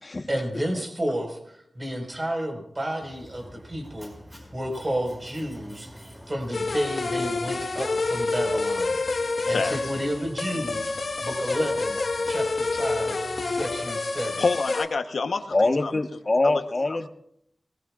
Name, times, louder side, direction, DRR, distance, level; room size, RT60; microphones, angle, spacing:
voice 1, 0.3-4.1 4.5-6.0 6.3-9.0 9.4-12.0 12.2-13.2 13.4-14.4, equal, 30° right, 2 dB, 4.9 m, -31 dB
Mechanisms, 3.0-13.8, equal, 10° right, 5.3 m, -46 dB
sound 1, 6.5-14.9, left 3 dB, 65° left, 1.6 m, -28 dB
voice 2, 9.4-9.8 14.4-15.9 16.4-16.6 16.9-17.0, left 4 dB, 90° left, 7 dB, 1.0 m, -27 dB
voice 3, 15.5-17.1, left 2 dB, 40° left, 5 dB, 1.2 m, -24 dB
23.5 x 20.0 x 2.5 m, 0.73 s
wide cardioid pair, 105°, 0 cm